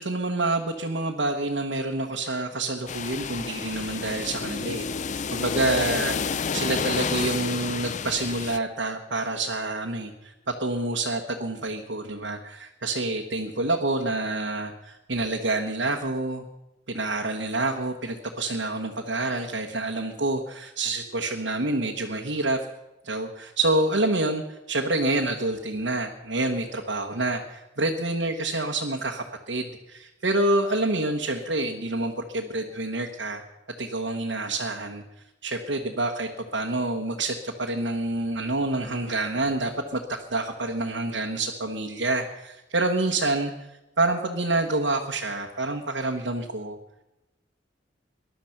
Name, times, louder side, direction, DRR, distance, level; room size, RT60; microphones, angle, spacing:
voice 1, 0.0-4.8 5.3-16.5 16.9-22.6 23.0-33.4 33.8-35.0 35.4-43.5 44.0-46.8, right 2 dB, 75° right, 1 dB, 1.3 m, -27 dB
sound 1, 2.9-8.6, left 6 dB, 40° left, 0.5 m, -30 dB
20.0 x 11.5 x 5.9 m, 0.96 s
head